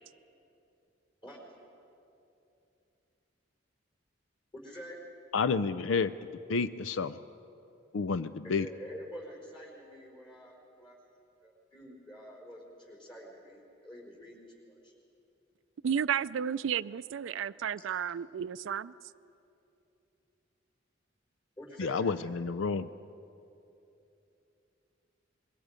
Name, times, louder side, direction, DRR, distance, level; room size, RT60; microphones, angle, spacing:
voice 1, 4.5-5.0 8.4-10.5 10.8-10.9 11.4-14.4 14.7-14.9 17.8-17.9 21.6-22.1, equal, 25° left, -1 dB, 4.6 m, -47 dB
voice 2, 5.3-6.1 6.5-7.2 7.9-8.7 21.8-22.9, left 5 dB, 85° left, 14 dB, 0.5 m, -30 dB
voice 3, 15.8-18.9, right 8 dB, 70° right, 16 dB, 0.4 m, -32 dB
25.5 x 22.5 x 5.1 m, 2.8 s
head